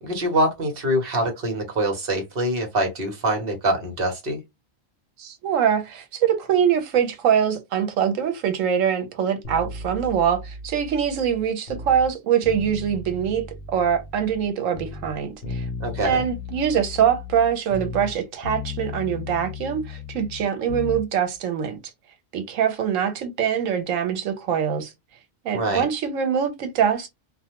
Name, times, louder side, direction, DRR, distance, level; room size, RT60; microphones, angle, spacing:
voice 1, 0.0-4.4 15.8-16.2 25.5-25.8, right 1 dB, 50° right, 1.1 m, -24 dB
voice 2, 5.2-13.5 13.7-15.7 16.0-21.8 22.3-24.9 25.4-27.1, right 8 dB, 75° right, 1.1 m, -23 dB
sound 1, 9.4-12.1 12.4-14.5 14.7-18.2 18.4-21.0 21.3-21.4, left 4 dB, 60° left, 0.7 m, -35 dB
2.4 x 2.3 x 2.8 m
omnidirectional pair, 1.4 m